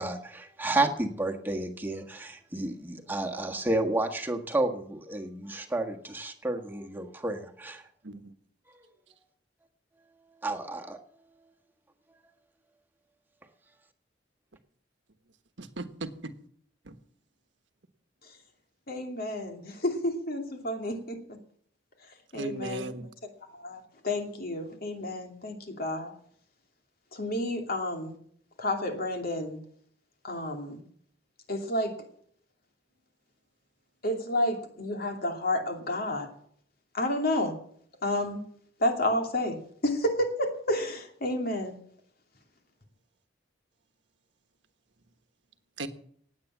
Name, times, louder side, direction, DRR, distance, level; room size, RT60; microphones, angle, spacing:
voice 1, 0.0-7.8 10.4-11.0, right 2 dB, 10° right, 3 dB, 1.5 m, -31 dB
voice 2, 15.6-16.1 16.9-17.0 22.3-23.1 45.8-45.9, right 2 dB, 85° right, 9 dB, 1.3 m, -37 dB
voice 3, 18.9-21.4 22.3-22.9 23.2-26.1 27.1-28.2 28.6-29.6 30.2-30.8 31.5-32.0 34.0-36.3 36.9-37.5 38.0-38.4 38.8-41.8, left 1 dB, 55° left, 4 dB, 2.7 m, -30 dB
18.5 x 8.6 x 7.4 m, 0.62 s
head